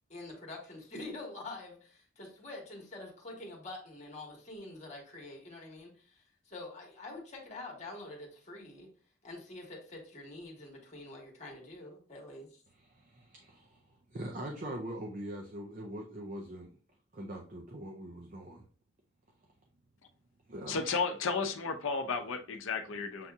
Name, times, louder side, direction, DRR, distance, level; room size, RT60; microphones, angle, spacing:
voice 1, 0.1-8.9 9.2-12.6, left 2 dB, 35° left, -1 dB, 1.4 m, -46 dB
voice 2, 12.7-13.8 14.1-16.7 17.1-18.6 20.5-20.8, right 1 dB, 40° right, 1 dB, 0.5 m, -42 dB
voice 3, 20.7-23.3, left 5 dB, 75° left, 5 dB, 0.6 m, -33 dB
7.3 x 2.7 x 2.3 m, 0.41 s
head